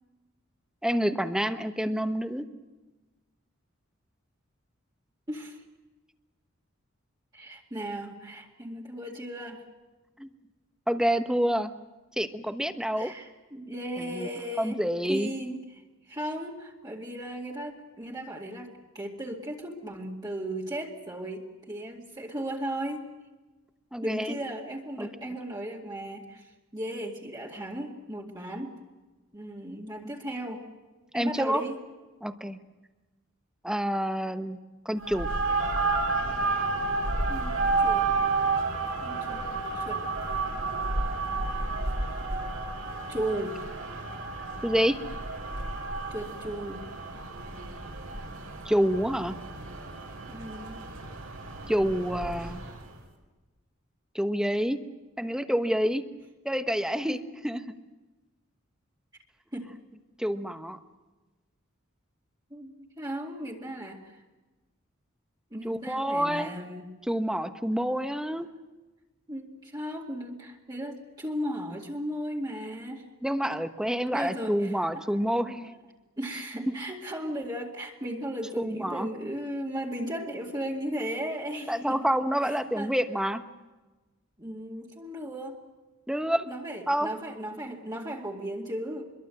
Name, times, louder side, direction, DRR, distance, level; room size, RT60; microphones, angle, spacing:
voice 1, 0.8-2.5 10.2-10.3 10.9-11.7 12.2-13.1 14.0-14.3 14.6-15.3 23.9-24.3 25.0-25.1 31.1-31.6 32.2-32.6 33.6-34.6 34.8-35.3 44.6-45.0 48.6-49.4 51.7-52.6 54.1-54.8 55.2-56.0 56.4-57.2 57.4-57.6 60.2-60.8 65.6-66.5 67.1-68.5 73.2-75.7 76.7-76.8 78.7-79.1 81.7-83.4 86.1-86.5 86.9-87.1, equal, 5° right, 8 dB, 1.1 m, -27 dB
voice 2, 5.3-5.6 7.3-9.6 13.0-14.8 15.1-15.8 16.1-23.1 24.0-28.8 29.3-30.7 31.1-31.8 37.3-38.1 39.0-39.4 39.7-40.1 43.1-43.6 46.1-46.9 50.3-50.8 57.0-57.3 59.5-59.7 62.5-64.2 65.5-67.0 69.3-73.0 74.1-75.3 75.6-75.8 76.2-82.1 82.4-82.9 84.4-85.6 86.5-89.0, right 1 dB, 20° right, -3 dB, 2.2 m, -36 dB
sound 1, 35.0-52.9, right 3 dB, 80° right, 5.4 m, -31 dB
25.0 x 22.5 x 7.8 m, 1.2 s
head